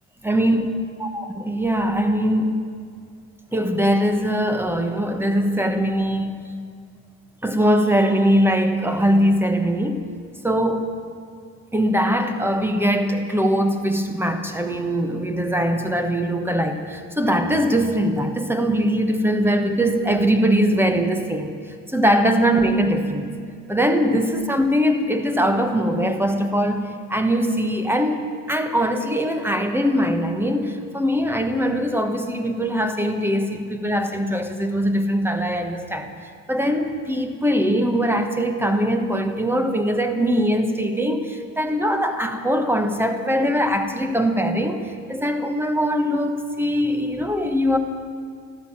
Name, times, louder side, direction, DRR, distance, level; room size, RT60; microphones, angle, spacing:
voice 1, 0.2-0.7 1.0-2.6 3.5-6.5 7.4-10.0 10.4-10.9 11.7-21.5 21.9-23.3 23.7-36.1 36.5-47.8, equal, 5° right, 6 dB, 1.3 m, -21 dB
14.0 x 12.5 x 7.5 m, 2.1 s
cardioid pair, 110°, 36 cm